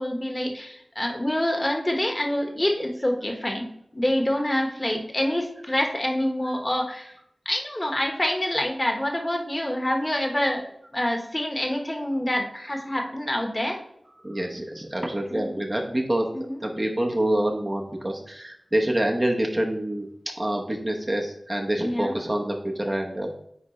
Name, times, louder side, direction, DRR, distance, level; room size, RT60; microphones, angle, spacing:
voice 1, 0.0-3.7 3.9-7.1 7.4-10.6 10.9-13.8 15.3-15.6 16.3-16.6 21.8-22.2, left 1 dB, 30° left, 2 dB, 1.4 m, -26 dB
voice 2, 14.2-16.3 16.6-20.1 20.3-23.4, right 1 dB, 30° right, 1 dB, 1.0 m, -26 dB
9.6 x 3.5 x 3.2 m, 0.73 s
wide cardioid pair, 50°, 0 cm